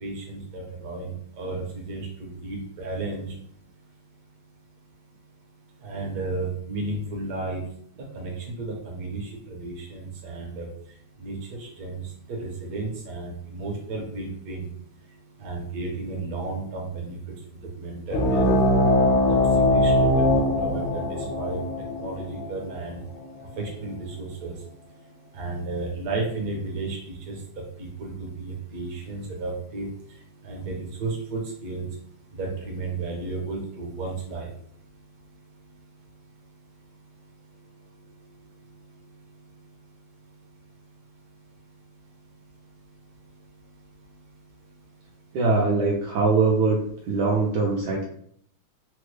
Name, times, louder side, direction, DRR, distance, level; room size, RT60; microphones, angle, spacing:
voice 1, 0.0-3.3 5.8-7.6 8.0-10.7 11.2-12.0 12.3-14.7 15.4-17.2 17.8-18.6 19.3-19.4 19.7-20.3 20.6-21.6 22.0-23.0 23.6-24.6 25.3-27.4 27.8-29.9 30.4-31.9 32.3-34.5, right 3 dB, 55° right, 0 dB, 1.1 m, -33 dB
sound 1, 18.1-23.2, left 1 dB, 80° left, 1.4 m, -21 dB
voice 2, 45.3-46.8 47.1-48.0, right 3 dB, 75° right, -2 dB, 0.9 m, -22 dB
3.5 x 2.1 x 3.2 m, 0.65 s
omnidirectional pair, 2.3 m